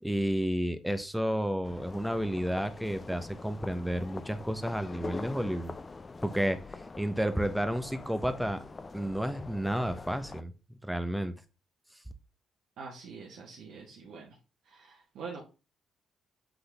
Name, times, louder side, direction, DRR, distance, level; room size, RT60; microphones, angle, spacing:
voice 1, 0.0-5.7 6.2-8.6 8.9-11.3, equal, ahead, 10 dB, 0.8 m, -31 dB
sound 1, 1.6-10.4, left 3 dB, 25° left, 0.5 m, -44 dB
voice 2, 12.8-14.4 14.6-15.4, right 5 dB, 75° right, -2 dB, 1.5 m, -45 dB
7.8 x 3.9 x 3.4 m, 0.31 s
cardioid pair, 90°, 0 cm